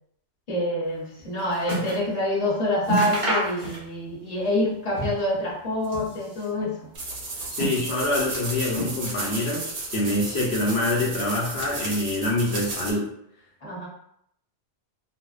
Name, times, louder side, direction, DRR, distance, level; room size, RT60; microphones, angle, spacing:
voice 1, 0.5-6.9 13.6-13.9, left 1 dB, 40° left, -5 dB, 0.8 m, -26 dB
sound 1, 0.9-2.1 2.4-2.5 2.8-4.1 4.4-5.4 5.7-6.6 7.2-8.2 8.7-9.4 9.7-10.5 11.2-11.3, right 1 dB, 35° right, 0.8 m, -31 dB
sound 2, 6.9-12.9, right 2 dB, 75° right, 1.1 m, -34 dB
voice 2, 7.5-9.7 9.9-13.1, left 1 dB, 70° left, -3 dB, 0.9 m, -25 dB
2.5 x 2.1 x 2.3 m, 0.74 s
omnidirectional pair, 1.2 m